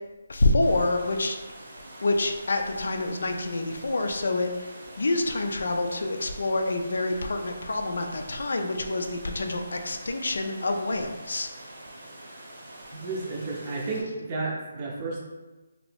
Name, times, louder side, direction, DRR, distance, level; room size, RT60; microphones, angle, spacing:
voice 1, 0.3-1.4 2.0-4.7 5.0-11.5, left 2 dB, 75° left, 5 dB, 0.4 m, -27 dB
sound 1, 0.6-14.0, right 1 dB, 60° right, 0.8 m, -45 dB
voice 2, 13.0-15.2, right 3 dB, 25° right, -2 dB, 0.5 m, -32 dB
2.9 x 2.6 x 3.3 m, 1.2 s
hypercardioid pair, 170°, 0 cm